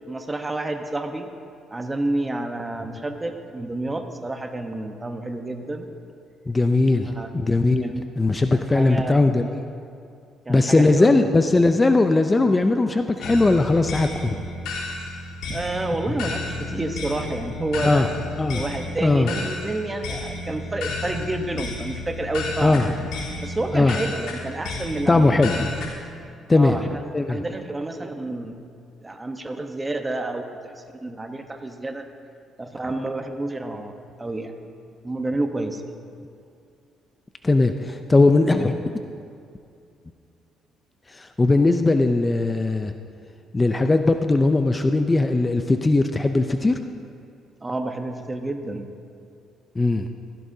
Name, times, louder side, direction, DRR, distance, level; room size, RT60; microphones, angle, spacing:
voice 1, 0.1-1.3 1.7-5.9 7.1-7.3 7.8-8.1 8.5-9.2 10.4-11.3 15.5-18.1 18.5-22.8 23.4-25.3 25.5-25.7 26.5-27.0 27.3-28.5 29.0-32.1 32.6-33.9 34.2-34.5 35.0-35.8 47.6-48.9, right 2 dB, 20° right, 6 dB, 1.1 m, -29 dB
voice 2, 6.5-9.6 10.5-14.4 17.8-18.1 18.4-18.6 19.0-19.3 22.6-22.9 23.7-24.0 25.1-25.7 26.5-26.8 27.1-27.4 37.4-39.0 41.1-42.9 43.5-46.8 49.8-50.1, left 2 dB, 20° left, 7 dB, 0.5 m, -19 dB
sound 1, 13.2-25.9, left 3 dB, 85° left, 3.5 m, -32 dB
16.5 x 15.0 x 2.8 m, 2.5 s
cardioid pair, 90°, 0 cm